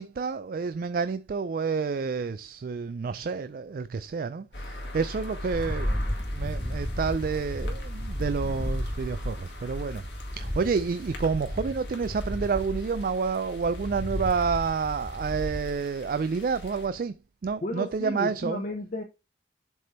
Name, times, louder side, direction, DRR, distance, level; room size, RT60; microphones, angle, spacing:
voice 1, 0.0-10.0 10.3-17.1 17.4-18.6, right 5 dB, 55° right, 0.3 m, -29 dB
sound 1, 4.5-16.9, left 1 dB, 80° left, 1.9 m, -43 dB
sound 2, 5.5-15.7, equal, 15° left, 1.3 m, -33 dB
voice 2, 17.6-19.0, left 1 dB, 45° left, 0.9 m, -33 dB
7.6 x 3.4 x 4.2 m
head